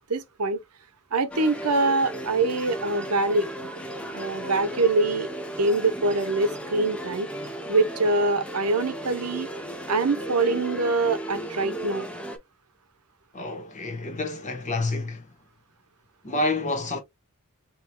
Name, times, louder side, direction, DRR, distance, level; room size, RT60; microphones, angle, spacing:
voice 1, 0.1-0.6 1.1-3.5 4.1-5.3 5.6-7.3 7.7-9.5 9.9-12.1, right 3 dB, 90° right, 0.8 m, -24 dB
sound 1, 1.3-12.4, right 1 dB, 5° left, 0.7 m, -35 dB
voice 2, 13.3-15.3 16.2-17.0, left 2 dB, 35° left, 1.2 m, -28 dB
4.9 x 3.0 x 2.2 m
head